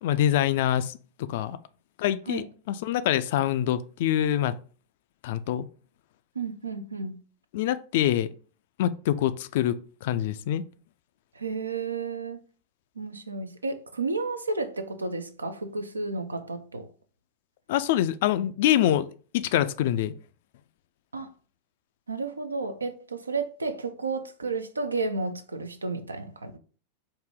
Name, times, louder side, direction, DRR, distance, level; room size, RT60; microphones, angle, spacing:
voice 1, 0.0-1.6 2.0-4.6 5.2-5.6 7.5-8.3 8.8-10.6 17.7-19.1 19.3-20.2, left 11 dB, 50° left, 0.3 m, -25 dB
voice 2, 6.4-7.2 11.4-12.4 13.0-16.9 21.1-21.3 22.1-26.6, right 3 dB, 80° right, 0.5 m, -32 dB
4.8 x 2.6 x 3.6 m
figure-of-eight pair, 90°, 0 cm